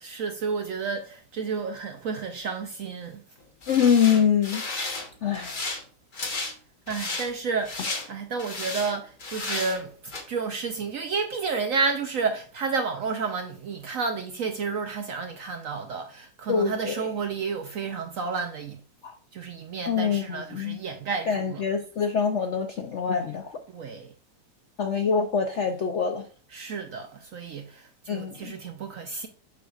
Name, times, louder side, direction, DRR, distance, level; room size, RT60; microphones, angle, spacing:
voice 1, 0.0-3.2 6.9-9.9 10.3-18.8 19.3-21.6 23.7-24.1 26.5-27.7 28.1-29.3, right 5 dB, 65° right, 0.8 m, -31 dB
sound 1, 3.6-5.1 5.3-5.8 6.1-6.5 6.9-7.3 7.6-8.1 8.4-8.9 9.2-9.8 10.1-10.2, left 3 dB, 30° left, 1.1 m, -33 dB
voice 2, 3.7-4.6 5.2-5.6 16.5-17.1 19.0-19.1 19.9-20.8 21.3-23.6 24.8-26.2 28.1-28.5, left 7 dB, 70° left, 0.7 m, -25 dB
7.1 x 6.2 x 2.4 m
omnidirectional pair, 1.9 m